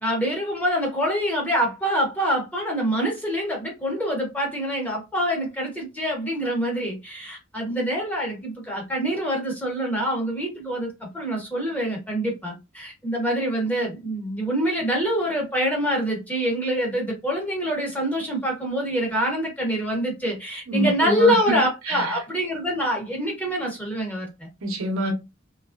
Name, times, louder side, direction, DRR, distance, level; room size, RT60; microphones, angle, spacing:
voice 1, 0.0-24.5, equal, 5° left, 0.8 m, -25 dB
voice 2, 20.7-21.6 21.9-22.2 24.6-25.1, right 1 dB, 80° right, 0.9 m, -26 dB
3.0 x 2.4 x 2.4 m
head